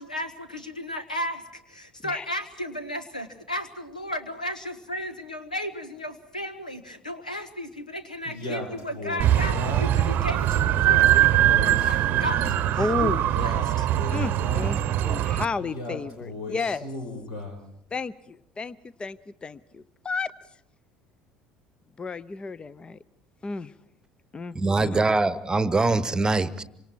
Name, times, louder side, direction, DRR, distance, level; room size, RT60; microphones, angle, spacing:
voice 1, 0.0-13.9, left 1 dB, 85° left, 11 dB, 1.4 m, -34 dB
Male speech man speaking, 8.2-10.1 10.6-12.6 13.2-14.9 15.6-17.6, left 1 dB, 70° left, 5.0 m, -36 dB
sound 1, 9.2-15.4, right 13 dB, 50° right, 0.9 m, -22 dB
voice 2, 12.8-13.2 14.1-16.9 17.9-20.3 22.0-23.0 23.4-23.7 24.3-25.0, left 4 dB, 25° left, 18 dB, 0.8 m, -32 dB
voice 3, 24.5-26.6, right 3 dB, 20° right, 15 dB, 1.1 m, -23 dB
27.0 x 25.5 x 4.6 m, 0.76 s
figure-of-eight pair, 60°, 4 cm